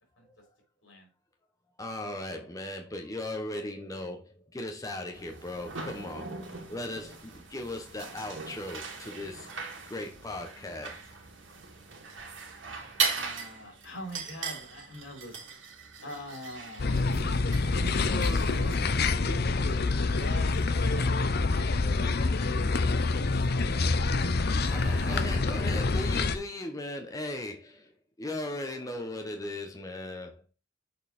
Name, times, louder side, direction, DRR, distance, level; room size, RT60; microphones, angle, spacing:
voice 1, 1.8-6.3 6.7-9.5 9.9-11.0 18.3-18.4 24.7-27.9 28.2-30.4, left 1 dB, 20° left, 1.0 m, -37 dB
sound 1, 5.1-19.1, right 5 dB, 85° right, 2.1 m, -39 dB
voice 2, 13.1-15.4 16.0-17.0 17.7-20.6 20.9-21.8 22.3-23.7 24.5-25.5, left 1 dB, 80° left, 3.8 m, -42 dB
sound 2, 16.8-26.4, left 3 dB, 55° left, 0.7 m, -26 dB
6.8 x 5.4 x 4.3 m
head